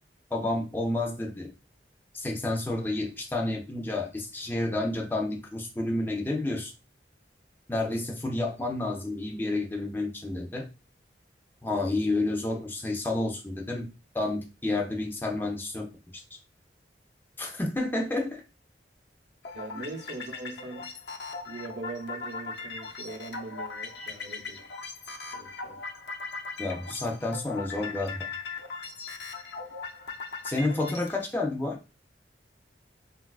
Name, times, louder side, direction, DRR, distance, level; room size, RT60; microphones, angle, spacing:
voice 1, 0.3-1.5 2.1-6.7 7.7-10.6 11.6-13.9 14.1-15.9 16.1-16.2 17.4-18.4 19.7-19.8 26.6-28.3 30.4-31.8, left 2 dB, 10° left, 0.4 m, -30 dB
voice 2, 7.7-8.0 19.5-20.9 21.4-24.7 25.3-25.8, right 3 dB, 65° right, 0.6 m, -41 dB
sound 1, 19.4-31.2, left 4 dB, 70° left, 0.5 m, -39 dB
3.7 x 2.3 x 2.3 m
head